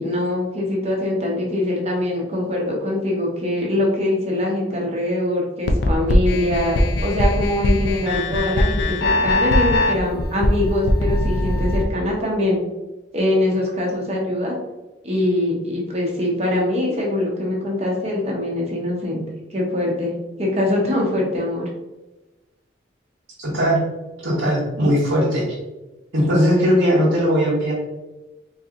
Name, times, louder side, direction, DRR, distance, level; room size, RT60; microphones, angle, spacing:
voice 1, 0.0-12.6 13.1-14.5 15.0-19.2 19.5-20.1 20.4-21.7, left 1 dB, 30° right, -2 dB, 0.8 m, -23 dB
sound 1, 5.7-11.8, left 1 dB, 55° left, 0.4 m, -20 dB
voice 2, 23.4-23.8 24.2-25.4 26.1-27.7, equal, 85° right, -8 dB, 1.1 m, -18 dB
3.9 x 2.8 x 2.5 m, 1.1 s
head